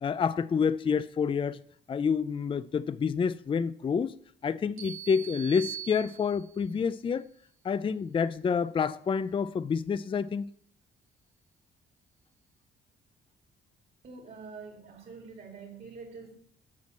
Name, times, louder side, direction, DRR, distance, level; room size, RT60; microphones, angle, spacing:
voice 1, 0.0-1.6 1.9-4.1 4.4-7.3 7.6-10.5, left 6 dB, 25° left, 0.4 m, -28 dB
sound 1, 4.8-6.6, right 9 dB, 80° right, 1.7 m, -42 dB
voice 2, 14.0-16.4, right 4 dB, 45° right, 2.4 m, -45 dB
7.4 x 5.9 x 7.6 m
cardioid pair, 90°, 20 cm